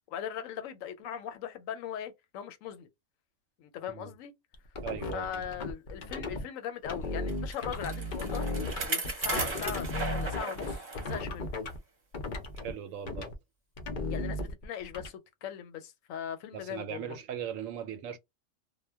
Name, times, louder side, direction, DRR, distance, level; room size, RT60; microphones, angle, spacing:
voice 1, 0.1-2.9 3.6-4.3 5.1-8.5 8.8-11.5 14.1-17.2, left 9 dB, 85° left, 1.0 m, -39 dB
sound 1, 4.5-6.4 6.8-11.8 12.1-12.7 13.1-13.3 13.8-15.1, left 2 dB, 55° left, 0.5 m, -35 dB
voice 2, 4.8-5.3 12.6-13.3 16.5-18.2, right 9 dB, 85° right, 1.0 m, -39 dB
Bicycle, 7.3-11.2 11.6-11.7 12.6-12.7, right 3 dB, 40° right, 0.8 m, -36 dB
2.1 x 2.1 x 3.3 m
omnidirectional pair, 1.3 m